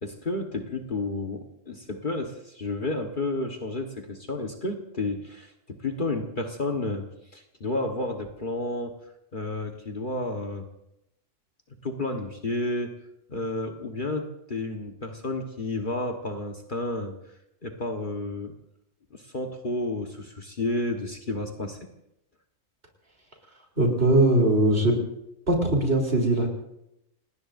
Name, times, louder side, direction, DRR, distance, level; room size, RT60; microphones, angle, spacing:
voice 1, 0.0-7.1 7.3-8.9 9.3-10.7 11.8-12.9 13.3-17.1 17.6-18.5 19.1-21.8, left 2 dB, 40° left, 3 dB, 1.5 m, -31 dB
voice 2, 23.8-25.0 25.5-26.5, right 1 dB, 50° right, 1 dB, 3.8 m, -21 dB
29.0 x 19.0 x 2.6 m, 0.83 s
omnidirectional pair, 1.3 m